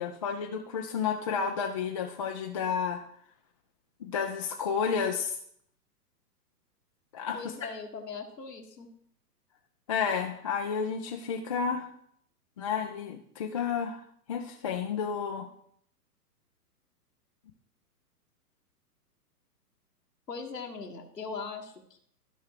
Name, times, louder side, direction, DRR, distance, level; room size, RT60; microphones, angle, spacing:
voice 1, 0.0-3.0 4.0-5.4 7.1-7.4 9.9-11.9 12.6-14.0 14.3-15.5, left 6 dB, 25° left, 3 dB, 0.4 m, -31 dB
voice 2, 7.3-8.9 20.3-22.0, left 4 dB, 85° left, 2 dB, 1.6 m, -40 dB
13.0 x 5.6 x 4.8 m, 0.68 s
figure-of-eight pair, 115°, 47 cm